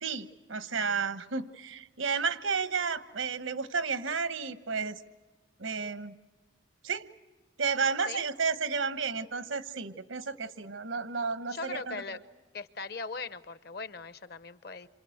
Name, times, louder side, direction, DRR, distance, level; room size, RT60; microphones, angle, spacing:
voice 1, 0.0-5.0 5.6-6.2 6.8-7.0 7.6-12.0, right 5 dB, 90° right, 12 dB, 1.1 m, -32 dB
voice 2, 11.5-12.2 12.5-14.9, left 4 dB, 50° left, 14 dB, 0.8 m, -39 dB
27.5 x 26.5 x 7.9 m, 1.3 s
head